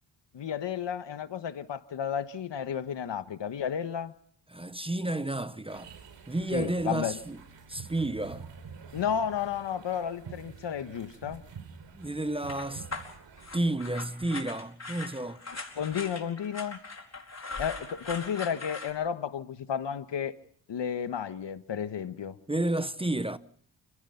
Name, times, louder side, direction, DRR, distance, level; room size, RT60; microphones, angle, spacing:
voice 1, 0.3-4.1 6.5-7.2 8.9-11.4 15.8-16.8 17.6-20.3 20.7-22.3, left 8 dB, 75° left, 1.5 m, -32 dB
voice 2, 4.5-5.9 6.3-7.4 7.7-8.4 11.9-12.9 13.5-15.4 22.5-23.4, right 1 dB, 10° right, 0.9 m, -31 dB
sound 1, 5.7-13.7, right 6 dB, 75° right, 4.0 m, -47 dB
sound 2, 12.4-18.9, left 3 dB, 35° left, 4.6 m, -40 dB
29.5 x 16.5 x 5.8 m
cardioid pair, 70°, 44 cm